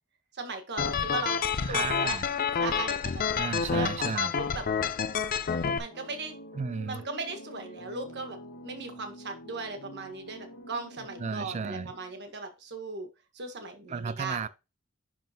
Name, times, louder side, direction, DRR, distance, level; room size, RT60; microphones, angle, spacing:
voice 1, 0.3-2.2 2.6-3.2 3.7-4.6 5.8-6.3 6.9-8.4 8.6-13.1 13.3-14.5, right 3 dB, 55° right, 1.4 m, -37 dB
sound 1, 0.8-5.8, left 6 dB, 45° left, 0.4 m, -28 dB
voice 2, 1.6-2.3 3.3-4.3 6.5-7.0 11.2-11.9 13.9-14.5, right 5 dB, 35° right, 0.3 m, -34 dB
sound 2, 5.9-12.3, equal, 85° left, 1.6 m, -47 dB
10.5 x 3.7 x 2.9 m
head